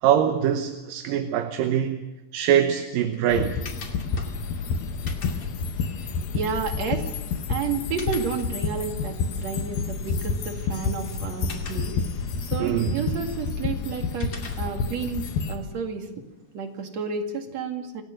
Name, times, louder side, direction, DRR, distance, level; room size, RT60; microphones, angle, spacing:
voice 1, 0.0-2.1 2.3-3.6 12.6-13.1, right 10 dB, 75° right, 2.6 m, -23 dB
sound 1, 2.5-17.1, left 4 dB, 40° left, 3.2 m, -48 dB
sound 2, 3.3-15.6, left 4 dB, 85° left, 3.4 m, -29 dB
voice 2, 6.0-7.1 7.5-12.0 12.4-16.1 16.5-18.0, right 5 dB, 50° right, 3.0 m, -31 dB
27.5 x 16.5 x 6.5 m
omnidirectional pair, 4.1 m